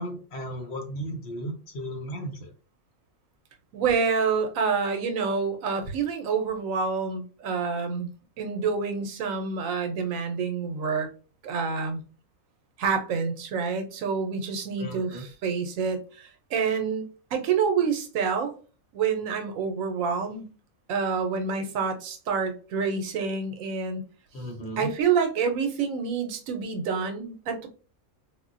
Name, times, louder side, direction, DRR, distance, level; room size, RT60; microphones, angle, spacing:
voice 1, 0.0-2.5 14.8-15.2 24.3-24.9, right 1 dB, 55° left, 2 dB, 1.0 m, -35 dB
voice 2, 3.7-8.1 8.4-11.1 11.4-12.0 12.8-18.5 18.9-20.5 20.9-24.0 24.8-27.7, right 5 dB, 80° right, 5 dB, 1.0 m, -27 dB
3.7 x 2.1 x 2.5 m, 0.36 s
omnidirectional pair, 1.4 m